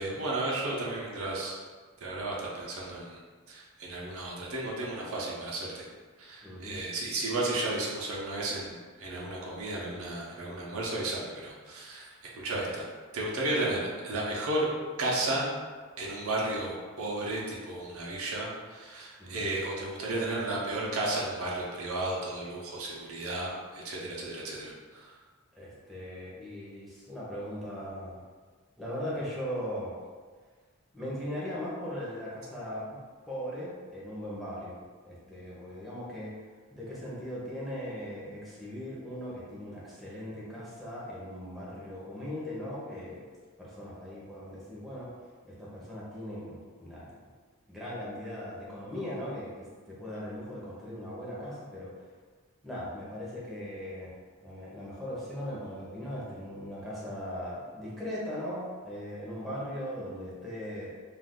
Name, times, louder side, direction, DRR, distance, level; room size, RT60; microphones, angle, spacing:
voice 1, 0.0-1.5 2.0-3.2 3.5-5.9 6.2-12.9 13.1-14.7 15.0-15.5 16.0-25.1, right 2 dB, 65° right, -4 dB, 0.6 m, -33 dB
voice 2, 6.4-6.8 12.5-12.7 19.2-19.6 25.5-28.2 28.8-30.0 30.9-33.0 33.3-36.4 36.7-43.2 43.6-45.1 45.4-47.1 47.7-51.9 52.6-54.1 54.4-60.9, equal, ahead, -8 dB, 0.6 m, -39 dB
2.4 x 2.3 x 3.5 m, 1.5 s
head